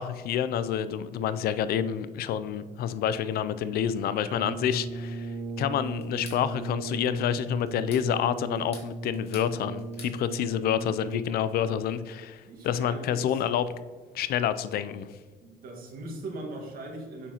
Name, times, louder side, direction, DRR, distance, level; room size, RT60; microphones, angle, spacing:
voice 1, 0.0-5.3 5.6-13.7 14.1-15.1, left 9 dB, 65° left, 14 dB, 0.4 m, -28 dB
Brass instrument, 4.3-11.5, right 2 dB, 40° right, 0.5 m, -37 dB
sound 1, 6.0-6.4 7.7-8.1 8.5-9.5 9.8-10.2, left 3 dB, 35° left, 1.8 m, -47 dB
voice 2, 12.5-13.4 15.4-17.3, right 2 dB, 60° right, 0 dB, 1.8 m, -40 dB
7.1 x 5.5 x 2.9 m, 1.4 s
cardioid pair, 110°, 17 cm